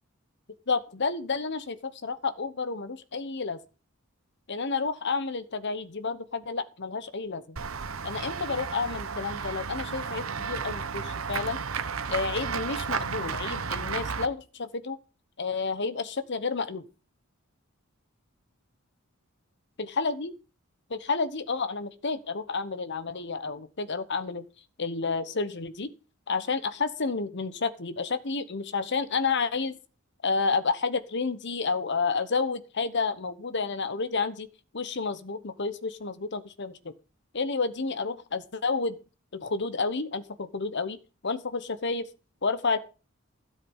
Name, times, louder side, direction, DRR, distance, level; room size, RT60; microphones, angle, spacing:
voice 1, 0.7-3.6 4.5-7.6 8.0-11.6 12.1-15.0 15.4-16.8 19.8-20.3 20.9-24.4 24.8-25.9 26.3-29.8 30.2-34.5 34.7-36.8 37.3-39.0 39.3-41.0 41.2-42.1 42.4-42.8, left 4 dB, 55° left, 12 dB, 1.1 m, -30 dB
Run / Walk footsteps / Bell, 7.6-14.3, right 5 dB, 70° right, 0.9 m, -33 dB
13.0 x 7.8 x 5.5 m, 0.34 s
head